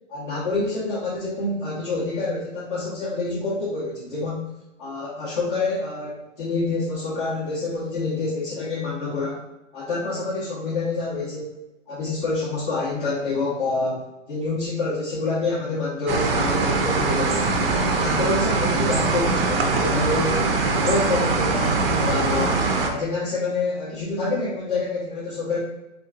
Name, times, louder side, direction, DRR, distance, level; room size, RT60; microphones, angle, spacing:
voice 1, 0.1-4.5 4.8-9.4 9.7-11.6 11.9-17.4 17.8-22.6 22.8-25.6, left 3 dB, 40° left, -9 dB, 1.1 m, -27 dB
sound 1, 16.1-22.9, right 3 dB, 50° right, 0.5 m, -22 dB
3.5 x 2.8 x 2.4 m, 0.98 s
hypercardioid pair, 160°, 38 cm